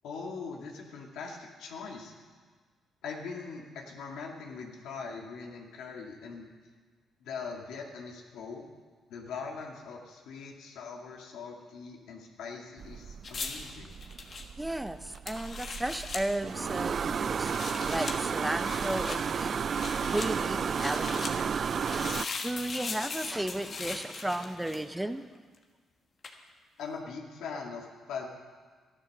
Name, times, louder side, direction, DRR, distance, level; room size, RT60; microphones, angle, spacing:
voice 1, 0.0-2.1 3.0-6.5 7.2-8.7 9.1-14.0 26.8-28.3, left 5 dB, 85° left, 0 dB, 2.1 m, -41 dB
sound 1, 12.8-22.2, right 6 dB, 50° right, 0.3 m, -33 dB
sound 2, 13.2-16.2 17.3-18.2 18.6-19.2 19.7-20.3 20.7-21.3 21.8-25.0 26.2-26.4, left 4 dB, 45° left, 1.6 m, -39 dB
voice 2, 14.6-17.5 17.9-19.6 20.1-21.6 22.4-25.3, right 1 dB, 10° right, 11 dB, 0.7 m, -34 dB
13.0 x 11.0 x 6.6 m, 1.5 s
cardioid pair, 90°, 0 cm